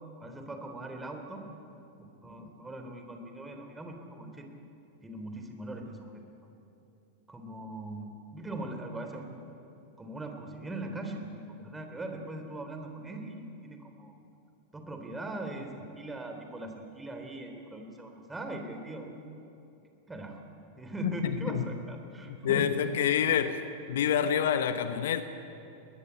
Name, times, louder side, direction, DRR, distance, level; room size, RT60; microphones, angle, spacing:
voice 1, 0.2-1.4 2.0-4.5 5.0-6.2 7.3-9.3 10.0-14.1 14.7-19.1 20.1-20.4 20.8-22.8, right 2 dB, 10° right, 4 dB, 3.3 m, -40 dB
voice 2, 21.0-21.7 22.3-23.6 23.9-25.2, left 9 dB, 60° left, 11 dB, 1.0 m, -27 dB
21.5 x 20.0 x 8.9 m, 2.8 s
figure-of-eight pair, 90°, 0 cm